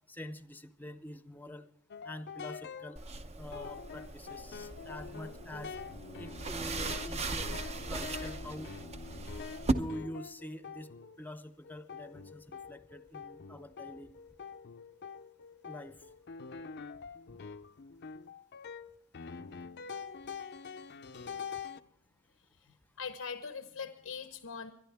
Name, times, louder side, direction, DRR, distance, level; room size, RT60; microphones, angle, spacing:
voice 1, 0.1-1.7 2.0-3.0 3.4-5.7 6.2-7.5 7.8-8.7 9.7-10.9 11.2-14.1 15.6-16.1 17.3-17.4 21.2-21.3, left 1 dB, 10° left, 11 dB, 0.7 m, -45 dB
sound 1, 1.9-3.1 3.5-11.3 11.6-21.8, left 5 dB, 55° left, 0.6 m, -45 dB
sound 2, 3.0-9.7, right 3 dB, 30° right, 0.8 m, -38 dB
voice 2, 23.0-24.7, left 6 dB, 85° left, 8 dB, 0.8 m, -41 dB
23.0 x 11.0 x 3.5 m, 0.72 s
head